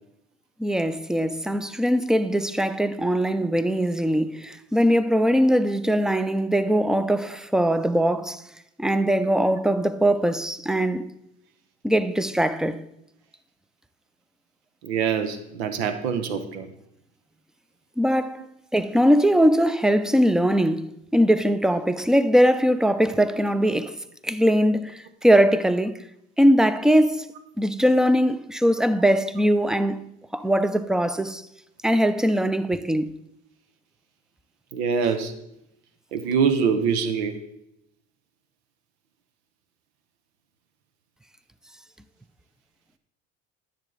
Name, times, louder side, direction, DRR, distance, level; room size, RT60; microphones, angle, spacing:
voice 1, 0.6-8.4 8.8-11.1 11.8-12.8 18.0-18.4 18.7-24.0 24.2-26.0 26.4-27.3 27.6-30.0 30.3-31.4 31.8-33.2, equal, ahead, 0.5 m, -21 dB
voice 2, 14.8-16.7 34.7-35.3 36.1-37.4, right 6 dB, 75° right, 1.0 m, -24 dB
10.5 x 7.5 x 3.9 m
hypercardioid pair, 65°, 33 cm